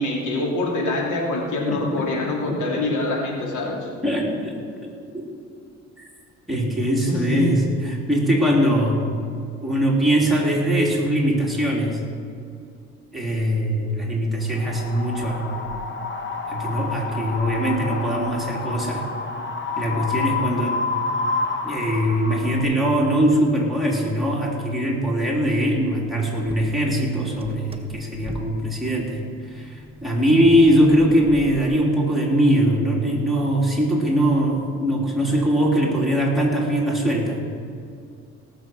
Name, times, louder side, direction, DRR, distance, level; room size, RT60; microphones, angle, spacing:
voice 1, 0.0-3.9 7.1-7.5, left 2 dB, 80° left, -1 dB, 3.1 m, -25 dB
voice 2, 1.7-2.0 2.5-2.6 4.0-4.6 5.1-5.3 6.0-6.1 6.5-9.1 9.6-12.0 13.1-15.5 16.5-19.1 19.8-20.8 21.6-37.4, equal, ahead, -4 dB, 3.5 m, -21 dB
Wind, 14.5-22.6, left 4 dB, 40° left, 1.5 m, -29 dB
sound 1, 26.3-31.9, right 1 dB, 20° right, 1.4 m, -40 dB
18.0 x 7.3 x 6.1 m, 2.4 s
cardioid pair, 90°, 30 cm